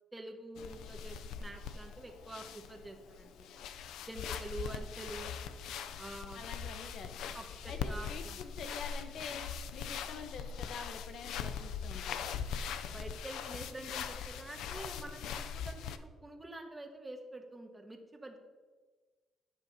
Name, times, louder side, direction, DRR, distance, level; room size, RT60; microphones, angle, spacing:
voice 1, 0.1-3.5 4.1-5.4 6.0-6.4 7.3-8.4 12.9-18.4, right 2 dB, 15° right, 4 dB, 1.5 m, -47 dB
sound 1, 0.6-16.0, left 7 dB, 85° left, 0.5 m, -41 dB
voice 2, 6.3-7.4 7.7-12.3, left 5 dB, 70° left, 7 dB, 1.1 m, -46 dB
12.5 x 9.1 x 2.9 m, 1.4 s
cardioid pair, 90°, 0 cm